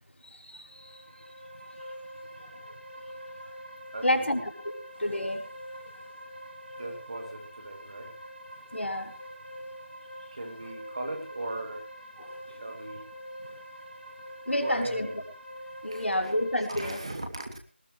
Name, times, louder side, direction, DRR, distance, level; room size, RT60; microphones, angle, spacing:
voice 1, 0.2-0.9 4.0-4.4 5.0-5.4 8.7-9.1 12.2-12.3 14.5-15.1 15.8-17.0, left 1 dB, 80° left, 4 dB, 3.8 m, -29 dB
sound 1, 0.7-17.0, equal, 65° right, 6.7 m, -45 dB
voice 2, 3.9-4.4 6.8-8.1 10.3-11.8 12.5-13.0 14.6-15.2 15.9-16.3 16.7-17.6, right 2 dB, 30° right, 4 dB, 2.4 m, -38 dB
19.5 x 16.5 x 3.1 m, 0.38 s
figure-of-eight pair, 175°, 6 cm